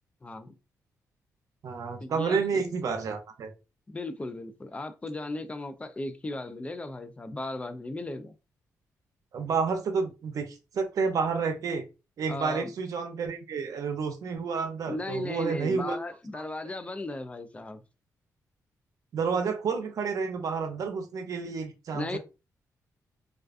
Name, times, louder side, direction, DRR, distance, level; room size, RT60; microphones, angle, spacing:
voice 1, 0.2-0.5 2.0-2.6 3.9-8.3 12.3-12.7 14.9-17.8 21.9-22.2, left 2 dB, 20° left, 0.4 m, -36 dB
voice 2, 1.6-3.5 9.3-11.8 12.2-16.0 16.3-16.4 19.1-22.2, right 5 dB, 65° right, 0.6 m, -30 dB
2.4 x 2.3 x 2.4 m
cardioid pair, 90°, 6 cm